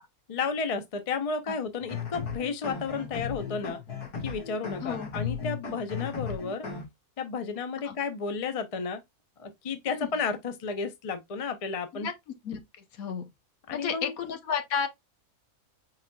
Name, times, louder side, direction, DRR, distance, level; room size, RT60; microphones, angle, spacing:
voice 1, 0.3-3.8 4.2-6.7 7.2-9.0 9.4-12.1 13.7-14.1, left 5 dB, 55° left, 0.4 m, -32 dB
sound 1, 1.8-6.8, left 6 dB, 90° left, 2.3 m, -36 dB
voice 2, 12.9-13.3 13.7-14.9, left 7 dB, 70° left, 1.3 m, -32 dB
5.6 x 4.0 x 2.2 m
omnidirectional pair, 1.6 m